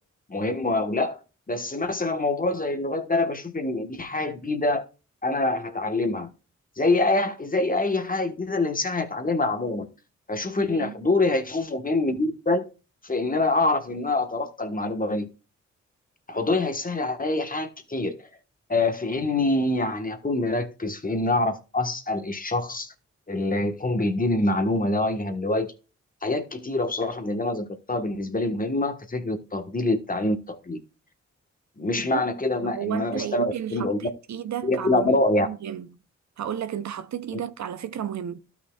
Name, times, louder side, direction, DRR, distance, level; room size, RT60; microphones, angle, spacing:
voice 1, 0.3-1.2 1.5-4.8 5.2-6.3 6.8-9.9 10.3-12.7 13.0-15.3 16.3-18.1 18.7-22.9 23.3-25.7 26.2-30.8 31.8-34.1 34.6-35.5 37.3-37.4, left 2 dB, 30° left, 1.3 m, -25 dB
voice 2, 32.6-35.9 36.4-38.4, right 9 dB, 70° right, 0.7 m, -33 dB
12.5 x 6.0 x 2.3 m
supercardioid pair, 50°, 30 cm